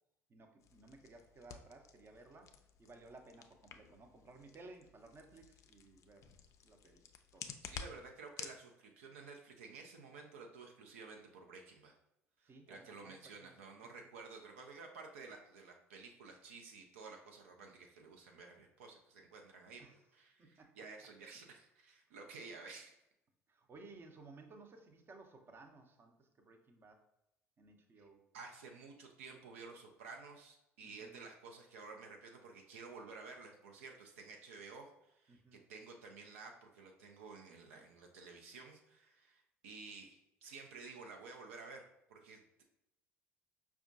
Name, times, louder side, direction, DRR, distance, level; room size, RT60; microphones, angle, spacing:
voice 1, 0.3-2.5 2.8-6.3 6.6-7.0 7.3-7.5 12.4-13.6 13.9-14.1 19.8-20.0 20.4-20.8 23.5-27.1 27.6-28.2 30.8-31.3 35.3-35.6, right 3 dB, 30° right, 4 dB, 0.6 m, -58 dB
sound 1, 0.6-8.6, left 7 dB, 45° left, 0.4 m, -52 dB
voice 2, 7.6-12.0 12.7-22.9 28.0-28.1 28.3-42.6, right 4 dB, 75° right, 2 dB, 0.5 m, -53 dB
5.0 x 2.3 x 2.5 m, 0.86 s
figure-of-eight pair, 60°, 7 cm